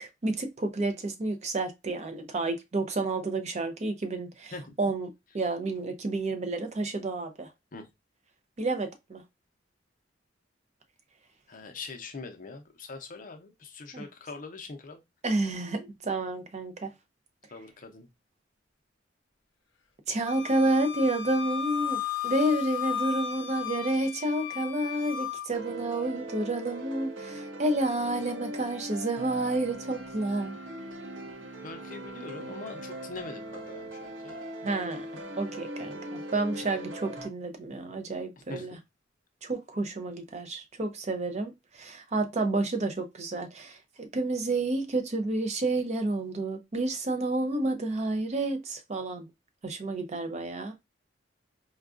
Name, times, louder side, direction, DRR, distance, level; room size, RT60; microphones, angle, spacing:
voice 1, 0.0-4.5 4.8-5.1 5.3-7.5 8.6-9.2 13.9-14.1 15.2-16.9 20.1-30.6 34.6-35.1 35.4-38.8 39.4-49.3 49.6-50.7, right 2 dB, 35° right, 0.5 m, -30 dB
voice 2, 11.5-15.0 17.5-18.1 31.6-34.4 36.6-36.9 38.4-38.8, left 4 dB, 45° left, 0.6 m, -43 dB
Wind instrument woodwind instrument, 20.3-25.5, left 8 dB, 75° left, 1.0 m, -34 dB
sound 1, 25.5-37.3, right 1 dB, 90° right, 0.6 m, -40 dB
4.5 x 2.3 x 2.4 m
head